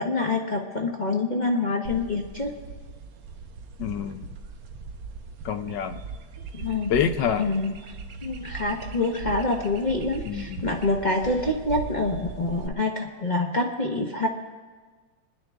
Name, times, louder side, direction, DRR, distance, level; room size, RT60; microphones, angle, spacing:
voice 1, 0.0-2.5 6.5-6.9 7.4-7.7 8.2-14.3, left 2 dB, 35° left, 1 dB, 0.8 m, -26 dB
sound 1, 1.9-12.7, right 4 dB, 90° right, 1.7 m, -39 dB
voice 2, 3.8-4.3 5.4-6.0 6.9-7.4 10.2-10.7, left 8 dB, 70° left, 9 dB, 1.3 m, -27 dB
27.0 x 10.5 x 3.5 m, 1.4 s
omnidirectional pair, 2.1 m